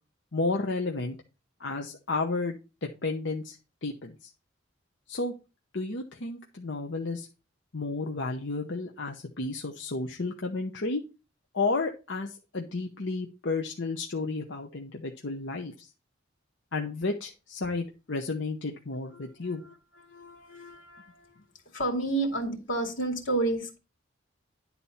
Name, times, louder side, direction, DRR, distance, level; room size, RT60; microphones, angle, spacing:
voice 1, 0.3-1.2 1.6-4.3 5.1-5.3 5.7-7.3 7.7-11.0 11.5-15.9 16.7-19.6, left 3 dB, 65° left, 0.9 m, -32 dB
voice 2, 19.1-19.7 20.1-21.3 21.7-23.8, right 2 dB, 85° left, 2.6 m, -31 dB
10.5 x 4.2 x 5.7 m
head